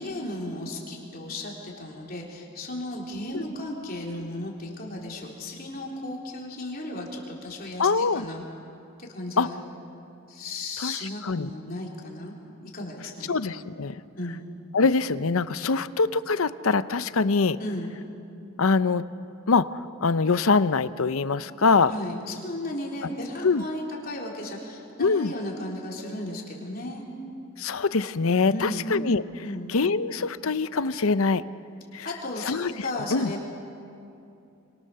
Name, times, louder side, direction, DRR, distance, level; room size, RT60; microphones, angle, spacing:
voice 1, 0.0-8.4 9.0-9.6 10.3-12.3 12.6-13.3 14.2-14.4 17.6-17.9 21.9-27.0 28.5-28.9 29.4-29.7 32.0-33.5, left 1 dB, 45° left, -2 dB, 3.8 m, -35 dB
voice 2, 7.8-8.2 9.4-9.5 10.8-10.9 11.2-11.5 13.3-13.9 14.7-17.6 18.6-19.0 19.5-19.7 20.0-21.9 23.4-23.6 25.0-25.3 27.6-29.2 29.7-31.4 31.9-32.1 32.4-32.7 33.1-33.3, left 4 dB, 75° left, 14 dB, 0.7 m, -23 dB
28.0 x 24.5 x 6.8 m, 2.7 s
head